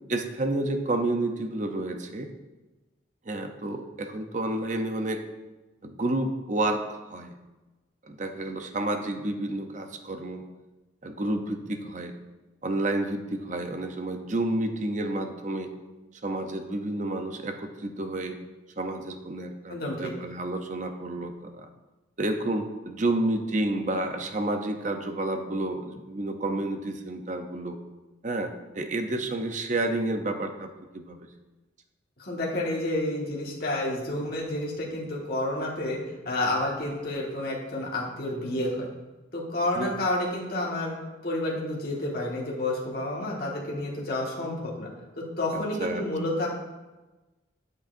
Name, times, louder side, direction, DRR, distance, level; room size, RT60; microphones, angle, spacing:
voice 1, 0.1-2.3 3.3-5.2 5.8-7.3 8.0-10.4 11.0-12.1 12.6-15.7 16.2-18.4 18.8-21.7 22.2-27.8 28.2-31.2 39.8-39.9 45.5-46.0, right 2 dB, 40° right, 6 dB, 0.6 m, -30 dB
voice 2, 19.7-20.1 32.2-38.9 39.3-41.0 41.2-44.9 45.2-46.5, left 1 dB, 50° left, -4 dB, 1.5 m, -30 dB
8.7 x 8.2 x 2.6 m, 1.1 s
head